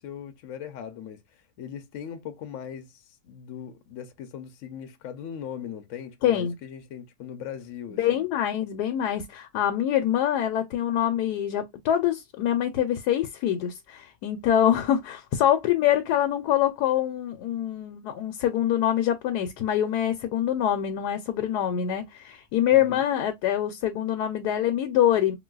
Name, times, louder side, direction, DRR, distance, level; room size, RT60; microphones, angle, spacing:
voice 1, 0.0-8.3 22.7-23.0, left 8 dB, 65° left, 0.8 m, -39 dB
voice 2, 6.2-6.5 7.9-25.4, left 11 dB, 80° left, 1.1 m, -25 dB
3.8 x 2.2 x 2.2 m
omnidirectional pair, 1.7 m